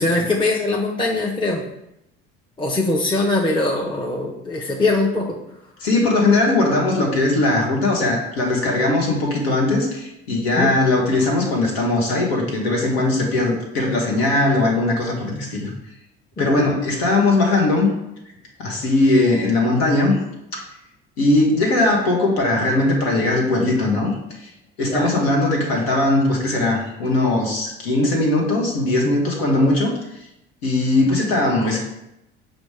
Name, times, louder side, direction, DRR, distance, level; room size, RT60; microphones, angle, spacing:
voice 1, 0.0-1.6 2.6-5.4 10.6-10.7 16.4-16.7 24.9-25.2, left 2 dB, 15° left, -2 dB, 0.6 m, -22 dB
voice 2, 5.8-15.7 16.4-17.9 18.6-20.2 20.5-20.6 21.2-24.5 24.8-29.9 30.6-31.8, left 2 dB, 85° left, -1 dB, 1.0 m, -19 dB
5.1 x 2.1 x 4.7 m, 0.84 s
hypercardioid pair, 65°, 31 cm